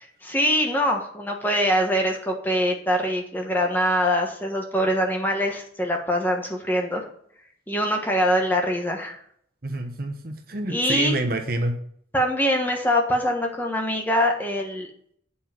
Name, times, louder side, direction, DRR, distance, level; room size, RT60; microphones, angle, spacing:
voice 1, 0.2-7.1 7.7-9.2 10.7-11.1 12.1-14.9, equal, 10° left, 2 dB, 1.3 m, -23 dB
voice 2, 9.6-11.7, right 2 dB, 50° right, 5 dB, 1.1 m, -27 dB
8.4 x 5.5 x 5.9 m, 0.63 s
head